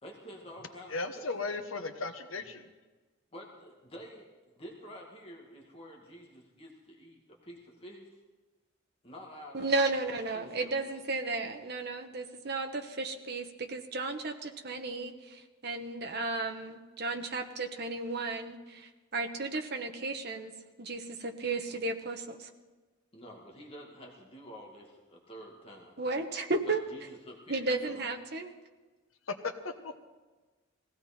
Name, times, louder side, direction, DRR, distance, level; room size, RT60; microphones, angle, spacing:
voice 1, 0.0-1.3 3.3-4.3 4.6-8.2 9.0-9.7 10.3-10.8 23.1-26.0 26.7-28.1, equal, 30° left, -1 dB, 2.0 m, -49 dB
voice 2, 0.9-2.6 29.3-30.0, left 3 dB, 80° left, 7 dB, 1.2 m, -36 dB
voice 3, 9.5-20.5 20.8-22.5 26.0-26.8 27.5-28.5, right 3 dB, 50° right, 4 dB, 1.3 m, -34 dB
19.5 x 16.5 x 4.4 m, 1.3 s
head